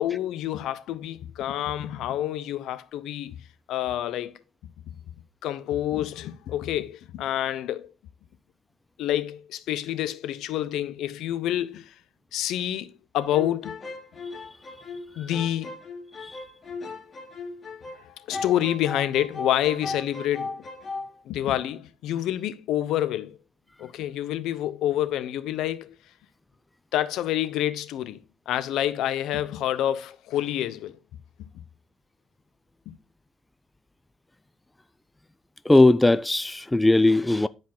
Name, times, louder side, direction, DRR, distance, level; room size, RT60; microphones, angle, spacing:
voice 1, 0.0-3.4 3.7-4.4 5.4-7.9 9.0-11.9 12.3-13.8 15.2-15.8 18.0-20.6 21.2-23.4 23.8-25.9 26.9-28.2 28.5-31.0 32.9-33.0, left 12 dB, 85° left, 0.8 m, -28 dB
sound 1, 13.2-18.0 18.3-21.1, left 3 dB, 35° left, 2.6 m, -37 dB
voice 2, 35.7-37.5, left 2 dB, 10° left, 0.4 m, -19 dB
10.5 x 5.1 x 3.8 m
cardioid pair, 110°, 0 cm